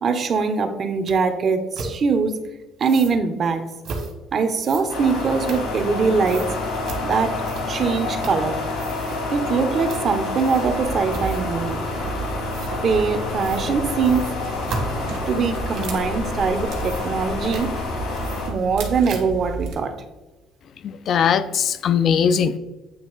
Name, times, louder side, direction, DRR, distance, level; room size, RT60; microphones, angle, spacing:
voice 1, 0.0-2.4 2.8-3.6 4.3-6.5 7.0-7.4 7.7-8.6 9.3-11.8 12.8-14.3 15.3-17.7 18.5-19.9, right 5 dB, 45° right, 8 dB, 0.7 m, -22 dB
sound 1, 1.1-1.2 1.7-1.9 2.8-3.2 3.8-4.1 4.6-6.0 6.3-6.5 6.9-7.0 7.4-7.9 8.2-8.5 8.7-9.2 9.9-10.1 10.4-10.8 11.1-11.6 12.5-12.7 13.4-13.7 14.0-16.1 16.5-17.3 17.5-17.7 18.2-18.8 19.1-19.4, right 3 dB, 65° right, 1.6 m, -35 dB
sound 2, 4.9-18.5, left 2 dB, 75° left, 2.1 m, -28 dB
sound 3, 10.6-19.7, right 3 dB, 85° right, 1.3 m, -33 dB
voice 2, 20.8-22.6, left 7 dB, 55° left, 13 dB, 0.4 m, -20 dB
8.6 x 2.9 x 3.9 m, 1.2 s
cardioid pair, 95°, 0 cm